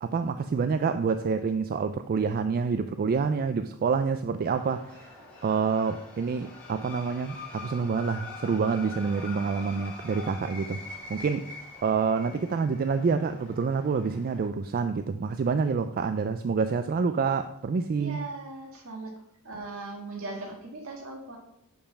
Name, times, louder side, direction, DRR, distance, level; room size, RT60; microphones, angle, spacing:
voice 1, 0.0-5.2 5.4-10.8 11.1-11.5 11.8-18.2, right 5 dB, 40° right, 0.3 m, -27 dB
sound 1, 4.5-14.5, left 3 dB, 5° left, 2.8 m, -44 dB
voice 2, 18.0-19.1 19.4-21.4, right 2 dB, 65° right, 1.8 m, -39 dB
6.8 x 5.5 x 5.7 m
head